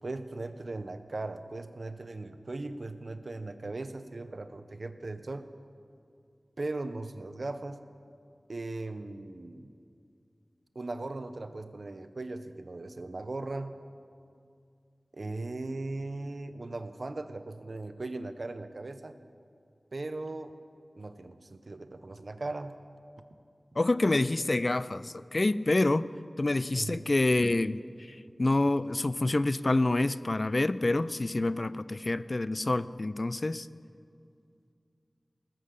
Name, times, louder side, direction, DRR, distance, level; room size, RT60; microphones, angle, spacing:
voice 1, 0.0-5.5 6.6-7.8 8.5-9.7 10.7-13.8 15.1-19.1 19.9-20.5 20.9-22.8 26.7-27.0, right 2 dB, 60° right, 10 dB, 0.7 m, -38 dB
voice 2, 23.8-26.1 26.4-27.8 28.4-33.7, left 2 dB, 50° left, 16 dB, 0.3 m, -27 dB
19.0 x 7.6 x 6.6 m, 2.4 s
wide cardioid pair, 65°, 0 cm